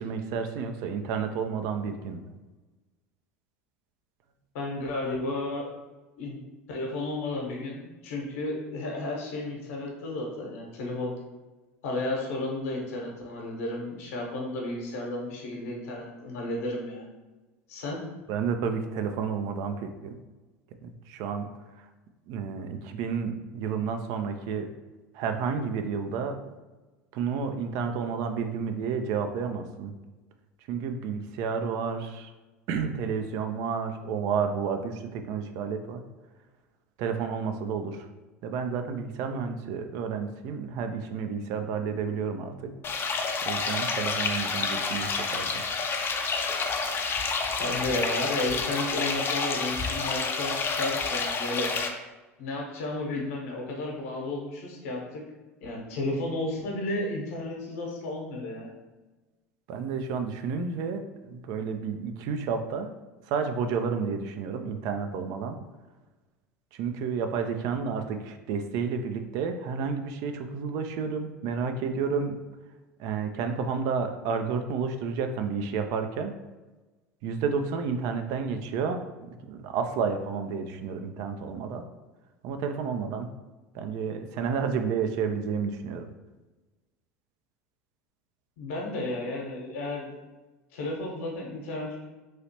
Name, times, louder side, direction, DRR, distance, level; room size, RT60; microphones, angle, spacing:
voice 1, 0.0-2.2 18.3-20.1 20.8-21.5 21.8-21.9 22.3-24.7 25.1-26.4 27.1-29.9 30.7-32.3 32.7-36.0 37.0-38.1 38.4-42.7 43.4-45.6 59.7-62.9 63.3-65.6 66.7-72.4 73.0-76.3 77.2-81.8 82.4-83.3 83.7-86.1, right 6 dB, 55° right, 7 dB, 0.4 m, -31 dB
voice 2, 4.5-5.7 6.2-6.4 6.7-11.1 11.8-17.1 17.7-18.0 47.6-51.8 52.4-55.2 55.6-58.7 88.6-90.1 90.7-92.0, left 2 dB, 65° left, -1 dB, 0.9 m, -33 dB
sound 1, 42.8-51.9, left 4 dB, 30° left, 0.5 m, -29 dB
3.1 x 2.8 x 2.8 m, 1.2 s
hypercardioid pair, 75°, 8 cm